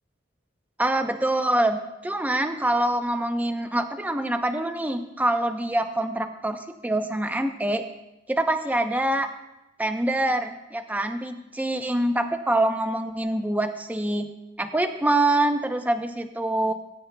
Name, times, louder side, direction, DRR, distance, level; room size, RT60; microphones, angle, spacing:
voice 1, 0.8-7.8 8.3-9.3 9.8-14.3 14.6-16.7, right 1 dB, 10° right, 6 dB, 0.6 m, -25 dB
17.5 x 9.3 x 2.2 m, 0.94 s
head